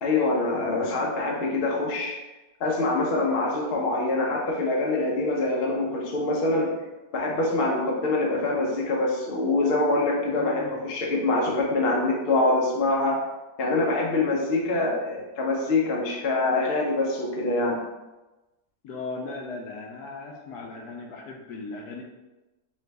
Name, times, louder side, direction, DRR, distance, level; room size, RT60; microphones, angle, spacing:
voice 1, 0.0-2.2 2.6-6.7 7.1-13.2 13.6-17.8, left 2 dB, 45° left, -2 dB, 0.8 m, -25 dB
voice 2, 10.2-10.9 18.8-22.0, left 3 dB, 75° left, 1 dB, 1.1 m, -37 dB
3.8 x 3.1 x 3.3 m, 1.1 s
omnidirectional pair, 1.7 m